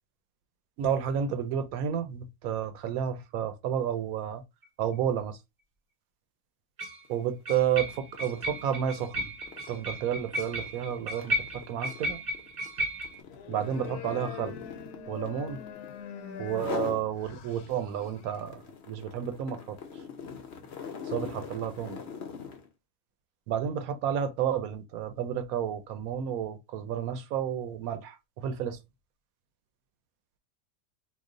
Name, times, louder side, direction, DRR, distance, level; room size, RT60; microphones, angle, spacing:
voice 1, 0.8-4.4 4.8-5.4 7.1-9.3 9.7-12.2 13.5-14.6 15.1-15.6 16.4-19.8 21.1-22.0 23.5-28.8, right 9 dB, 75° right, 1.0 m, -31 dB
sound 1, 4.6-4.7 6.8-7.0 7.5-13.2, equal, 45° right, 0.6 m, -34 dB
sound 2, 7.0-7.3 7.6-16.0 16.5-17.1 17.5-22.7, left 6 dB, 55° left, 0.8 m, -42 dB
sound 3, 13.2-18.5, left 8 dB, 85° left, 1.1 m, -43 dB
3.0 x 2.0 x 3.7 m
omnidirectional pair, 1.6 m